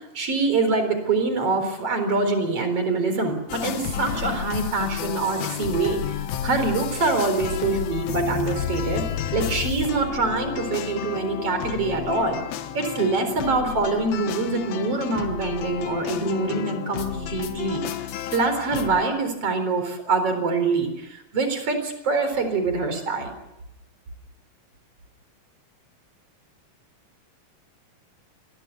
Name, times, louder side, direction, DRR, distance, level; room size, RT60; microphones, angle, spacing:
voice 1, 0.0-6.2 6.4-9.1 9.3-12.4 12.7-23.4, right 3 dB, 40° right, 8 dB, 5.0 m, -25 dB
sound 1, 3.5-19.0, left 10 dB, 80° left, 3.2 m, -31 dB
26.5 x 21.5 x 6.8 m, 0.92 s
omnidirectional pair, 4.2 m